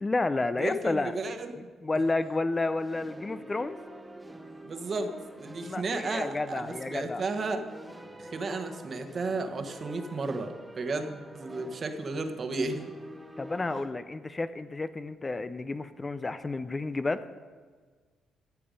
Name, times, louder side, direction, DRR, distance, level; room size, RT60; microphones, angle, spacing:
voice 1, 0.0-1.1 1.8-3.8 5.6-7.2 13.4-17.2, left 3 dB, 25° left, 12 dB, 0.4 m, -31 dB
voice 2, 0.6-1.7 4.6-7.6 8.2-12.8, right 3 dB, 45° right, 7 dB, 1.1 m, -33 dB
sound 1, 2.6-13.8, right 1 dB, 10° right, 0.8 m, -47 dB
14.0 x 6.9 x 5.2 m, 1.5 s
cardioid pair, 90°, 0 cm